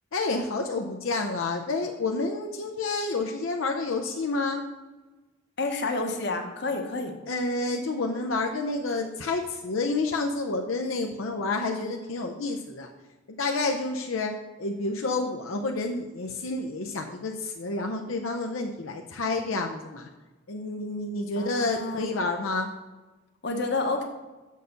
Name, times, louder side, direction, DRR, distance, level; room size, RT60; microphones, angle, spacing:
voice 1, 0.1-4.6 7.3-12.9 13.4-14.3 14.6-20.1 20.5-22.7, left 3 dB, 85° left, 3 dB, 0.6 m, -29 dB
voice 2, 5.6-7.1 21.4-22.2 23.4-24.0, left 3 dB, 55° left, 4 dB, 1.1 m, -29 dB
6.8 x 6.6 x 5.1 m, 1.2 s
head